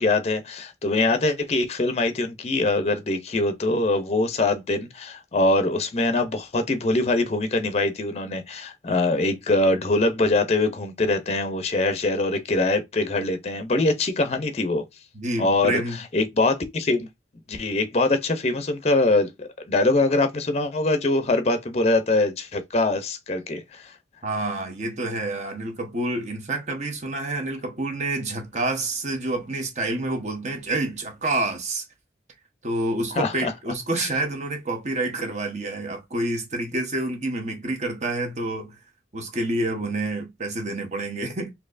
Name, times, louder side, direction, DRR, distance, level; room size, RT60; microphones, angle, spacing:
voice 1, 0.0-14.8 15.4-17.1 17.5-23.9 33.2-33.5 34.0-34.1, left 2 dB, 35° left, 0.5 m, -23 dB
voice 2, 15.1-16.0 24.2-31.8 32.6-38.8 39.1-41.5, right 2 dB, 40° right, 0.9 m, -28 dB
4.3 x 2.7 x 2.5 m
head